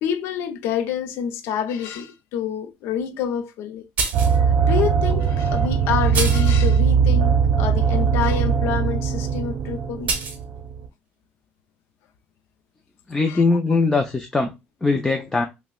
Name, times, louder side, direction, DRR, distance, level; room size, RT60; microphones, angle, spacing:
voice 1, 0.0-3.8 4.4-10.1 13.3-13.4, left 8 dB, 85° left, 0.4 m, -27 dB
sound 1, 4.0-4.4 5.2-5.3 6.1-6.6 10.1-10.4, right 4 dB, 40° right, 0.9 m, -25 dB
sound 2, 4.1-10.9, right 6 dB, 85° right, 0.5 m, -20 dB
voice 2, 13.1-14.5 14.8-15.5, left 3 dB, 10° left, 0.4 m, -20 dB
5.5 x 2.1 x 2.2 m
cardioid pair, 160°, 4 cm